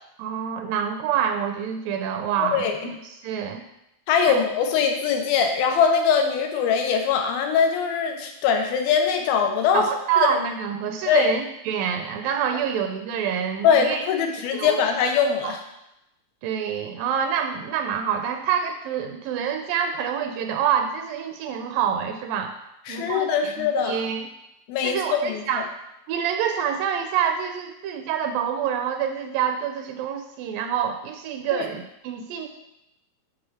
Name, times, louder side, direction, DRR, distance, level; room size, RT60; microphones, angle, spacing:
voice 1, 0.2-3.6 4.3-4.4 9.7-14.0 14.5-14.8 15.4-15.5 16.4-22.6 22.9-24.3 24.8-25.7 26.1-32.5, right 8 dB, 80° right, 5 dB, 2.1 m, -27 dB
voice 2, 2.4-2.8 4.1-9.9 10.2-10.3 11.1-11.3 13.6-15.6 22.9-24.0 24.7-25.7 31.5-31.7, left 6 dB, 90° left, 4 dB, 2.6 m, -22 dB
6.7 x 3.7 x 5.6 m, 0.87 s
omnidirectional pair, 4.1 m